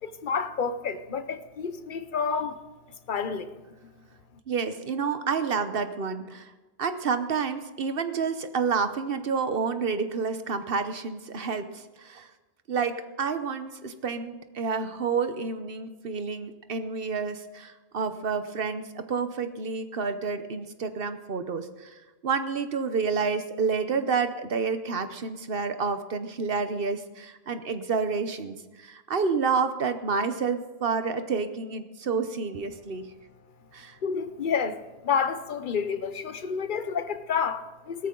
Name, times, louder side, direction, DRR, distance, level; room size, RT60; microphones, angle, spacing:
voice 1, 0.0-2.6 3.1-3.5 34.0-38.1, left 6 dB, 50° left, 1.0 m, -29 dB
voice 2, 4.5-6.5 6.8-12.3 12.7-33.1 33.7-34.0, right 5 dB, 60° right, 1.1 m, -29 dB
16.5 x 14.0 x 3.8 m
omnidirectional pair, 1.1 m